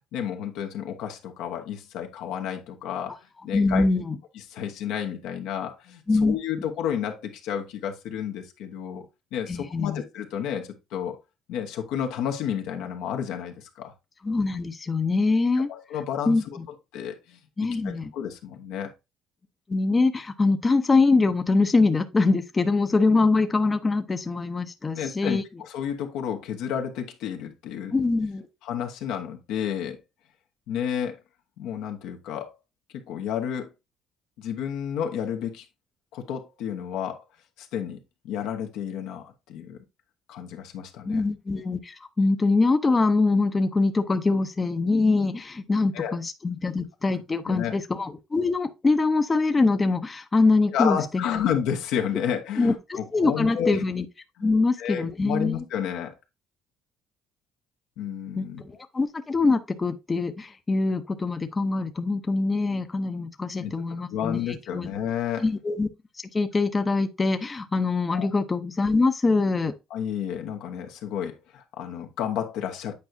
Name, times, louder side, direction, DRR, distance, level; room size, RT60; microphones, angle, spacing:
voice 1, 0.1-3.8 4.3-9.0 9.3-11.2 11.5-13.9 15.7-16.6 16.9-18.9 24.9-27.9 28.6-30.0 30.7-31.2 31.6-32.5 32.9-33.7 34.4-35.6 36.1-37.2 37.6-38.0 38.2-39.8 40.3-41.2 45.9-46.2 47.4-47.7 50.7-53.8 54.4-54.5 54.8-56.1 58.0-58.6 63.6-63.7 64.1-65.4 68.1-68.3 69.9-72.9, left 8 dB, 80° left, 1.2 m, -31 dB
voice 2, 3.5-4.2 6.1-6.3 9.5-10.0 14.2-15.7 16.3-16.6 17.6-18.1 19.7-25.4 27.9-28.5 41.1-51.2 52.6-54.0 54.4-55.5 58.4-64.9 65.4-65.9 66.3-69.7, left 3 dB, 25° left, 0.7 m, -23 dB
8.5 x 4.7 x 2.6 m
cardioid pair, 90°, 0 cm